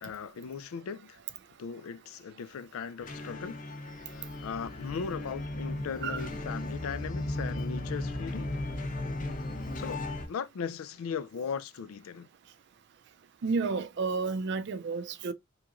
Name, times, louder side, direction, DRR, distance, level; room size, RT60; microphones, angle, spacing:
voice 1, 0.0-1.2 1.6-3.6 4.1-8.5 9.8-12.3, left 6 dB, 85° left, 0.4 m, -38 dB
sound 1, 3.0-10.3, left 2 dB, 40° left, 0.6 m, -36 dB
voice 2, 13.4-15.3, right 4 dB, 55° right, 0.4 m, -31 dB
3.6 x 2.9 x 2.4 m
head